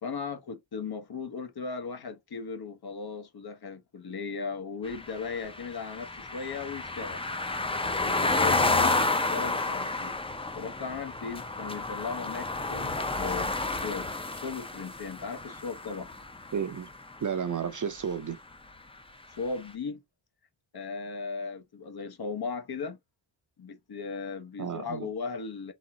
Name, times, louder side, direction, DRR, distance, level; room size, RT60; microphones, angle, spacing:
voice 1, 0.0-7.2 8.0-9.0 9.3-10.2 10.5-16.1 19.4-20.0 20.7-23.0 23.6-25.7, left 5 dB, 55° left, 1.2 m, -37 dB
sound 1, 4.9-16.9, left 2 dB, 10° left, 0.7 m, -30 dB
voice 2, 16.5-16.9 17.2-18.4 24.6-25.1, right 7 dB, 40° right, 0.7 m, -32 dB
4.0 x 3.6 x 2.8 m
cardioid pair, 85°, 46 cm